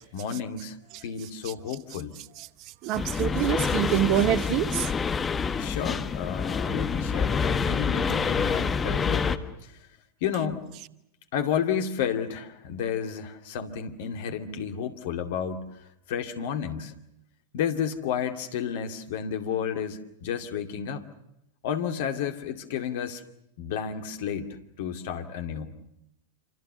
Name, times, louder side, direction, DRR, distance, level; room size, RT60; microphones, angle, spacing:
voice 1, 0.0-2.1 5.5-9.7 10.2-10.7 11.3-15.6 16.1-16.9 17.5-21.0 21.6-23.2 23.6-24.5 24.8-25.8, left 8 dB, 50° left, 2.4 m, -31 dB
voice 2, 2.8-4.9, right 12 dB, 40° right, 1.0 m, -25 dB
sound 1, 2.9-9.4, left 5 dB, 20° left, 1.4 m, -27 dB
27.5 x 26.0 x 6.9 m
figure-of-eight pair, 90°, 0 cm